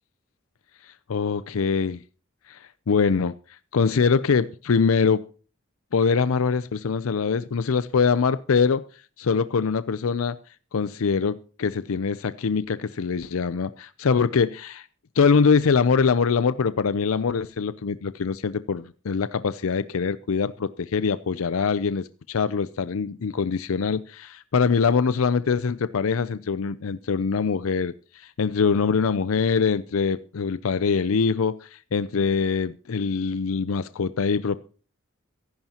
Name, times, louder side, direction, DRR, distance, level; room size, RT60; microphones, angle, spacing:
voice 1, 0.8-2.0 2.5-5.2 5.9-10.4 10.7-14.9 15.2-34.6, left 5 dB, 85° left, 0.5 m, -23 dB
23.5 x 11.5 x 2.9 m
head